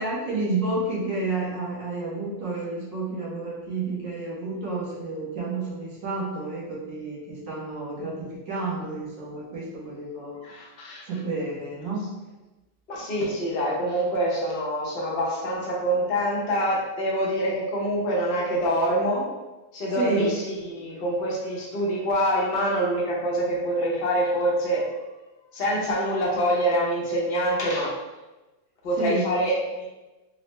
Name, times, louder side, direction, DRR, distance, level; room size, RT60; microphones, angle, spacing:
voice 1, 0.0-10.6 11.0-12.1 19.9-20.2 29.0-29.2, right 3 dB, 55° right, -5 dB, 1.1 m, -30 dB
voice 2, 10.4-11.0 12.9-19.3 19.7-24.9 25.5-27.9 28.8-29.8, equal, 50° left, -4 dB, 0.6 m, -25 dB
4.0 x 2.0 x 3.1 m, 1.1 s
omnidirectional pair, 1.9 m